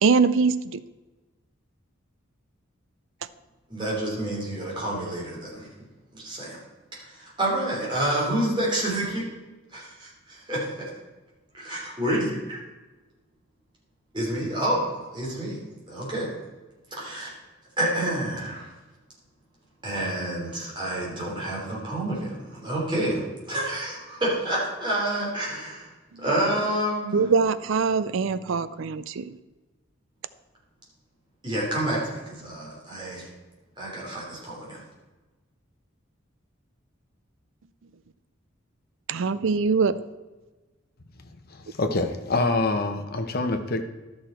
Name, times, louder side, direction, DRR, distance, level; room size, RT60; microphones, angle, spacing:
voice 1, 0.0-0.8 27.1-29.3 39.1-40.0, right 5 dB, 65° right, 15 dB, 0.4 m, -23 dB
voice 2, 3.7-5.7 6.1-6.6 7.1-9.2 9.7-10.9 11.5-12.6 14.1-15.6 15.9-16.3 16.9-17.3 17.8-18.7 19.8-25.9 26.2-27.2 31.4-33.3 33.8-34.8, right 1 dB, 25° right, -5 dB, 3.4 m, -28 dB
voice 3, 41.5-43.8, left 2 dB, 50° left, 6 dB, 0.9 m, -26 dB
12.0 x 6.4 x 4.4 m, 1.2 s
head